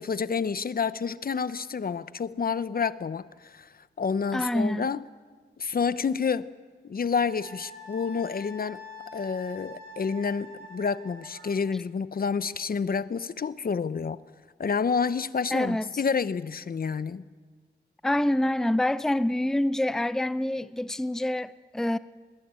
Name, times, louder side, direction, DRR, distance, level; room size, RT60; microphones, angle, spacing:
voice 1, 0.0-3.7 4.0-5.0 5.6-6.4 6.8-8.8 9.1-14.2 14.6-17.2, left 5 dB, 50° left, 0.8 m, -29 dB
voice 2, 4.3-4.8 15.5-15.8 18.0-22.0, left 1 dB, ahead, 0.6 m, -26 dB
Wind instrument woodwind instrument, 7.3-11.6, left 1 dB, 75° right, 4.7 m, -45 dB
21.5 x 21.5 x 9.0 m
cardioid pair, 75°, 20 cm